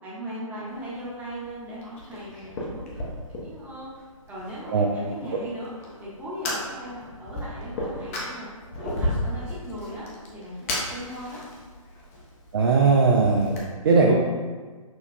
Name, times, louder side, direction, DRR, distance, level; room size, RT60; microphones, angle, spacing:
voice 1, 0.0-3.9 4.3-5.7 6.0-8.5 8.8-10.1 10.3-11.4, equal, 10° right, -8 dB, 0.9 m, -38 dB
Fire, 0.7-13.6, left 1 dB, 25° left, 0.6 m, -35 dB
voice 2, 12.5-14.1, right 4 dB, 40° right, -1 dB, 0.4 m, -19 dB
6.0 x 2.3 x 2.6 m, 1.4 s
figure-of-eight pair, 130°, 18 cm